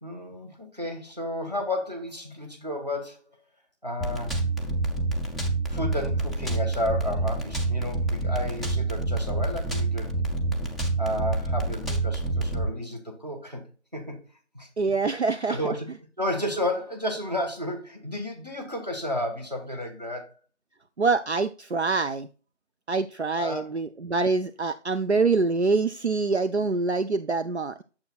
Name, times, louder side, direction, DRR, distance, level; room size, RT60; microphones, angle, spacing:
voice 1, 0.0-3.2 3.8-4.4 5.7-10.1 11.0-13.7 13.9-14.2 14.5-14.7 15.5-15.9 16.2-20.3 23.3-23.7, left 1 dB, 35° right, 1.4 m, -32 dB
sound 1, 4.0-12.7, right 2 dB, ahead, 0.6 m, -27 dB
voice 2, 14.8-15.7 21.0-22.3 22.9-27.8, right 4 dB, 65° right, 0.5 m, -25 dB
8.8 x 7.1 x 2.4 m
figure-of-eight pair, 175°, 36 cm